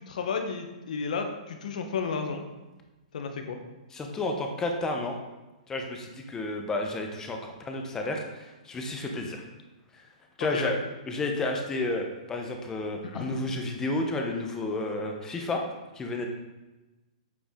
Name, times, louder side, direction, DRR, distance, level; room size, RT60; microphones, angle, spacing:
voice 1, 0.0-2.4 3.1-3.6 10.4-10.7 13.0-13.3, left 5 dB, 70° left, 5 dB, 1.2 m, -32 dB
voice 2, 3.9-5.2 5.7-9.4 10.4-10.8 11.1-15.6 16.0-16.3, left 2 dB, 10° left, 2 dB, 0.9 m, -31 dB
8.6 x 4.7 x 3.8 m, 1.1 s
hypercardioid pair, 150°, 4 cm